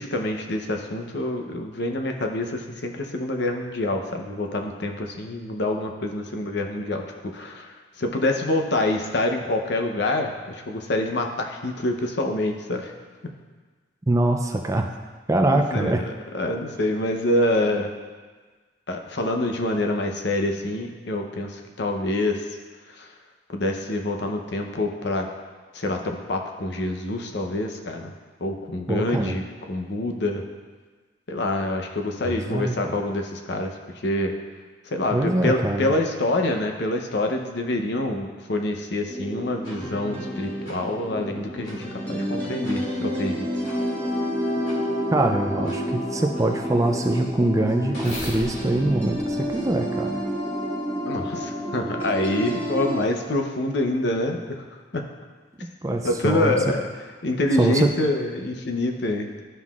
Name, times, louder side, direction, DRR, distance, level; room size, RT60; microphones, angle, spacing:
voice 1, 0.0-7.0 7.3-12.9 15.5-15.9 16.3-17.9 18.9-22.5 22.9-23.1 23.5-25.3 25.7-28.1 28.4-30.4 31.3-34.4 34.8-43.5 51.1-54.6 54.9-55.0 56.0-56.8 57.2-59.4, left 1 dB, 60° left, 3 dB, 0.7 m, -26 dB
voice 2, 14.1-14.9 15.3-16.0 28.9-29.4 32.2-32.7 35.1-35.9 45.1-50.2 55.6-56.6 57.6-57.9, right 2 dB, 15° right, 3 dB, 0.4 m, -23 dB
sound 1, 39.1-53.1, equal, 10° left, 1.3 m, -29 dB
sound 2, 39.6-39.8 40.6-40.8 41.6-41.8 42.6-42.8 43.6-43.8 44.6-44.8 45.6-45.8 46.3-50.2, equal, 90° left, 2.4 m, -39 dB
12.0 x 5.6 x 2.4 m, 1.4 s
head